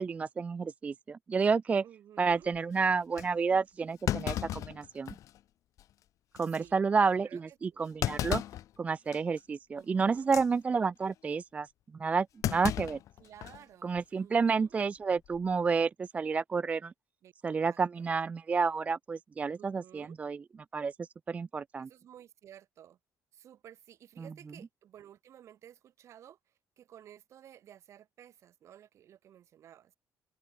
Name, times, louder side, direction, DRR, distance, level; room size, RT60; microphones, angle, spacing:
voice 1, 0.0-1.8 2.2-5.1 6.3-8.4 8.8-11.7 12.0-13.0 13.8-16.9 17.4-20.4 20.7-21.9, right 5 dB, 20° right, 0.5 m, -30 dB
voice 2, 1.8-2.5 6.5-6.8 7.1-8.0 9.7-10.3 13.2-14.7 17.2-17.3 17.7-18.2 19.6-20.2 21.8-23.0 23.3-29.9, right 10 dB, 50° right, 4.6 m, -55 dB
Thump thud, 2.3-2.6 3.2-3.3 4.1-5.4 5.8-5.9 6.4-6.6 8.0-8.7 9.1-9.4 10.2-10.5 12.4-13.6 14.0-14.1 15.2-15.5, left 12 dB, 55° left, 1.1 m, -34 dB
cardioid pair, 165°, 6 cm